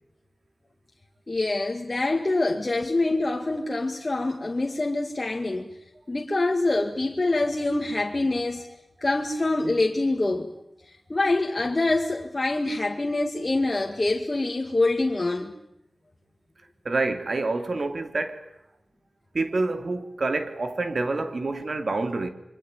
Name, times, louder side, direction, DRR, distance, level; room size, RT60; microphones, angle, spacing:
voice 1, 1.3-5.8 6.1-8.7 9.0-10.5 10.9-15.5, left 2 dB, 40° left, 2.2 m, -25 dB
voice 2, 16.8-18.5 19.3-22.3, right 3 dB, 65° right, 2.7 m, -27 dB
27.0 x 24.0 x 9.1 m
wide cardioid pair, 60°, 0 cm